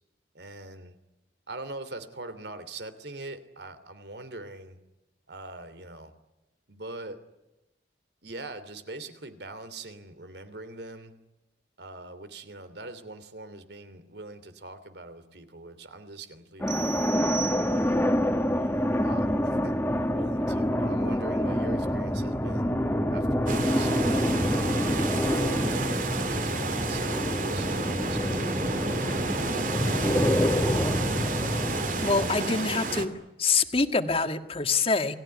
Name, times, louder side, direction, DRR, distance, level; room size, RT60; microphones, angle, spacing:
voice 1, 0.3-1.0 1.5-4.8 5.3-6.1 6.7-7.2 8.2-11.1 11.8-17.1 17.7-18.2 18.6-19.8 20.1-22.8 23.1-29.4, right 2 dB, 70° right, 12 dB, 3.1 m, -43 dB
sound 1, 16.6-32.3, equal, 10° left, 1.9 m, -27 dB
sound 2, 16.7-18.2, right 9 dB, 25° right, 0.9 m, -36 dB
sound 3, 23.5-33.1, right 3 dB, 50° right, 2.7 m, -31 dB
voice 2, 31.4-31.7 32.0-33.1 33.4-35.2, left 4 dB, 35° left, 8 dB, 1.8 m, -26 dB
29.5 x 20.0 x 9.8 m, 1.0 s
head